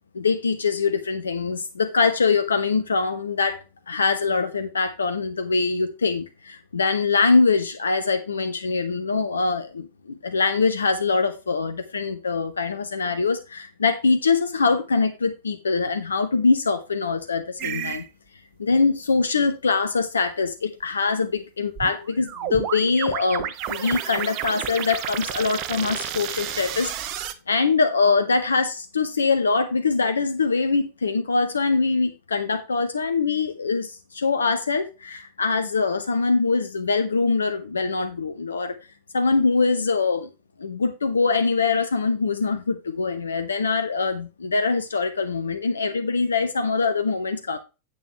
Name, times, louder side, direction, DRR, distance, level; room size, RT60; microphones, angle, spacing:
voice 1, 0.1-3.6 3.9-18.0 18.6-26.9 27.5-38.8 39.1-40.3 40.6-47.6, left 4 dB, 75° left, 0.9 m, -23 dB
sound 1, 17.6-18.0 21.8-27.3, right 11 dB, 40° right, 1.1 m, -31 dB
9.0 x 8.7 x 3.3 m
figure-of-eight pair, 90°, 0 cm